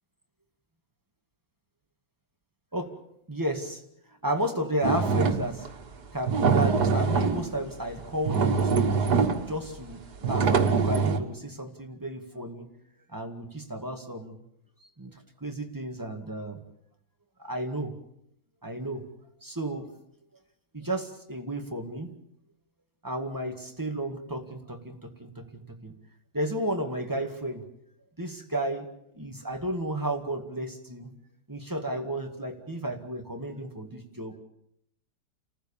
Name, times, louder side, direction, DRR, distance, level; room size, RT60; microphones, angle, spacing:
voice 1, 3.3-3.8 4.2-5.7 6.1-9.0 9.5-12.7 13.1-14.4 14.8-16.6 17.4-18.0 18.6-19.0 19.4-19.9 20.7-22.1 23.0-25.9 26.3-27.7 28.2-28.9 29.1-31.1 31.5-34.4, right 1 dB, 10° right, 4 dB, 1.9 m, -33 dB
sound 1, 4.8-5.7 6.2-7.5 8.0-8.1 8.3-9.5 10.2-11.2, right 5 dB, 75° right, 2.1 m, -24 dB
30.0 x 15.0 x 7.2 m, 0.75 s
omnidirectional pair, 1.8 m